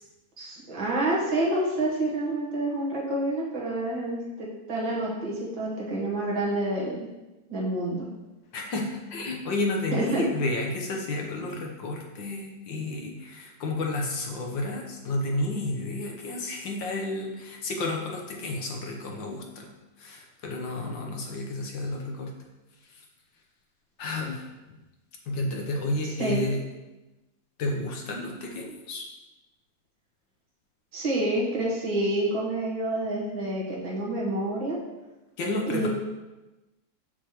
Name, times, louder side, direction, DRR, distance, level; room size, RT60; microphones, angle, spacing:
voice 1, 0.4-7.1 7.5-8.1 9.9-10.2 26.2-26.4 30.9-34.8 35.7-35.9, right 1 dB, 75° right, -5 dB, 2.3 m, -28 dB
voice 2, 8.5-19.7 20.0-22.3 24.0-24.4 25.3-26.6 27.6-29.1 35.4-35.9, left 2 dB, 70° left, 1 dB, 1.6 m, -31 dB
6.6 x 6.5 x 3.0 m, 1.1 s
omnidirectional pair, 2.1 m